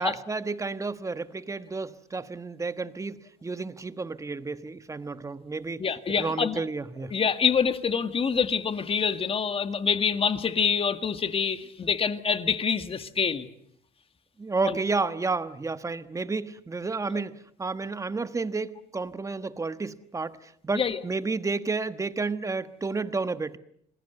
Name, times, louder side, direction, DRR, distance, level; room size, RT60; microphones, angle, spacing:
voice 1, 0.0-5.8 6.2-7.1 14.4-23.6, right 3 dB, 20° right, 12 dB, 1.3 m, -31 dB
voice 2, 5.8-6.6 7.1-13.5 14.6-14.8 20.7-21.0, left 6 dB, 35° left, 10 dB, 1.9 m, -26 dB
27.5 x 20.5 x 8.0 m, 0.69 s
cardioid pair, 110°, 17 cm